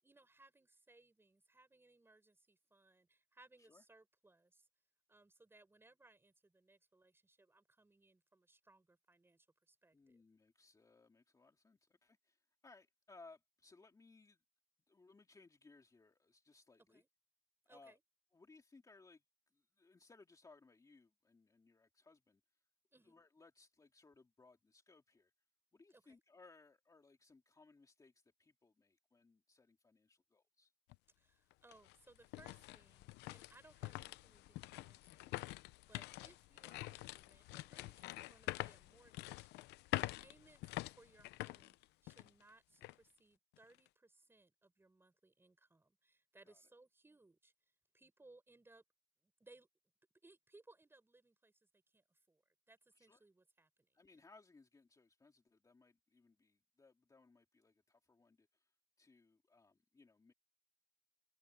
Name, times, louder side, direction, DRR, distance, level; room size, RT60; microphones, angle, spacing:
voice 1, 0.0-4.7 5.1-10.2 16.9-17.1 17.7-18.0 22.9-23.2 25.9-26.2 31.2-39.7 39.9-48.8 49.2-49.7 50.2-52.4 52.7-54.0, right 2 dB, 15° right, 6.2 m, -67 dB
voice 2, 9.9-14.4 14.9-17.0 17.7-18.0 18.3-19.2 19.5-22.4 23.0-25.3 25.7-30.7 36.2-36.3 46.4-46.6 53.0-53.2 53.9-60.3, left 3 dB, 20° left, 2.4 m, -65 dB
sound 1, 30.9-31.0 31.5-42.4 42.8-42.9 43.5-43.9, left 18 dB, 90° left, 0.7 m, -46 dB
cardioid pair, 110°, 17 cm